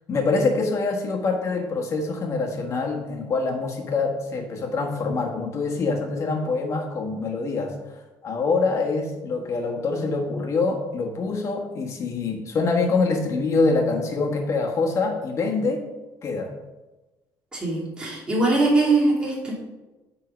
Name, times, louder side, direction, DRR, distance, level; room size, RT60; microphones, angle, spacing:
voice 1, 0.1-7.7 8.2-15.9 16.2-16.5, left 3 dB, 40° left, 2 dB, 1.4 m, -25 dB
voice 2, 17.5-19.5, right 2 dB, 10° right, -4 dB, 2.2 m, -21 dB
9.4 x 3.8 x 5.1 m, 1.1 s
cardioid pair, 150°, 8 cm